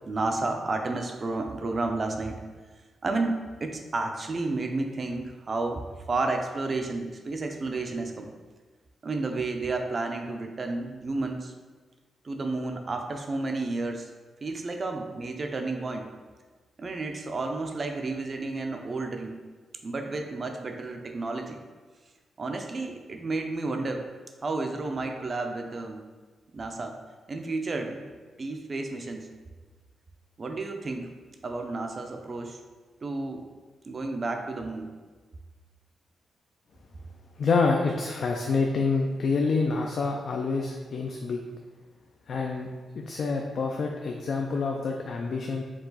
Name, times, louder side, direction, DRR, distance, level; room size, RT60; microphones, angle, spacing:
voice 1, 0.0-2.4 3.0-5.8 6.1-8.3 9.0-11.5 12.2-14.1 14.4-16.1 16.8-19.4 19.8-21.6 22.4-24.1 24.4-26.0 26.5-27.0 27.3-28.1 28.4-29.3 30.4-31.1 31.4-32.6 33.0-33.4 33.9-34.9, right 3 dB, 35° right, 4 dB, 0.4 m, -31 dB
voice 2, 37.4-41.4 42.3-42.7 43.1-45.6, left 4 dB, 55° left, 1 dB, 0.3 m, -27 dB
4.6 x 2.4 x 3.9 m, 1.4 s
cardioid pair, 120°, 0 cm